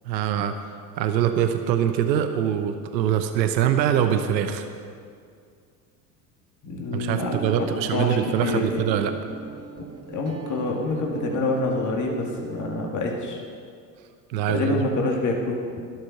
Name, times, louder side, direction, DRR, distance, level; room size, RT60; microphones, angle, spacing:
voice 1, 0.1-0.5 1.0-4.7 6.9-9.1 14.3-14.8, right 9 dB, 85° right, 8 dB, 1.0 m, -23 dB
voice 2, 6.6-8.8 10.1-13.4 14.5-15.6, left 2 dB, 35° left, 0 dB, 2.3 m, -27 dB
Guitar, 7.3-12.9, right 5 dB, 30° right, 1.3 m, -38 dB
13.0 x 11.5 x 6.0 m, 2.3 s
hypercardioid pair, 85°, 50 cm